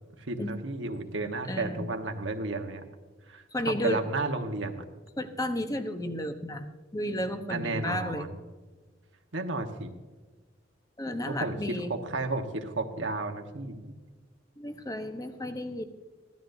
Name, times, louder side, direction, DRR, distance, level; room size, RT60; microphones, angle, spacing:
voice 1, 0.2-2.8 3.3-4.8 7.5-8.3 9.3-9.9 11.3-13.9, right 2 dB, 80° right, 4 dB, 1.2 m, -33 dB
voice 2, 1.5-1.9 3.5-4.0 5.2-8.3 11.0-11.9 14.6-15.9, left 1 dB, 20° left, 7 dB, 0.9 m, -33 dB
16.0 x 12.5 x 2.6 m, 1.3 s
head